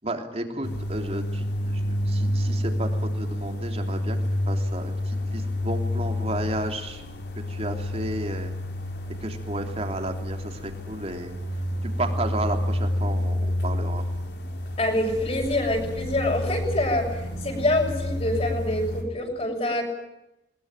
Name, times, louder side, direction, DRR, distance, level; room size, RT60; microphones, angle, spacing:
voice 1, 0.0-4.2 4.5-7.0 7.5-8.5 9.2-11.3 11.8-14.0, right 1 dB, 35° right, 4 dB, 3.2 m, -33 dB
sound 1, 0.6-19.0, left 1 dB, 70° left, 4.5 m, -29 dB
voice 2, 14.8-19.8, left 1 dB, 35° left, 1 dB, 6.8 m, -26 dB
21.5 x 21.0 x 9.1 m, 0.89 s
head